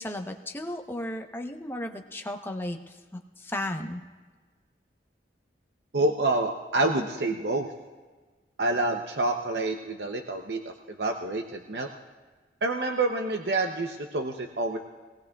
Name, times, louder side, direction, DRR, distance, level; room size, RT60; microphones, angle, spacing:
voice 1, 0.0-4.0, left 1 dB, 15° left, 3 dB, 0.8 m, -35 dB
voice 2, 5.9-7.7 8.6-10.7 11.0-11.9 12.6-14.8, right 2 dB, 65° right, 3 dB, 0.7 m, -27 dB
23.5 x 19.0 x 2.3 m, 1.4 s
head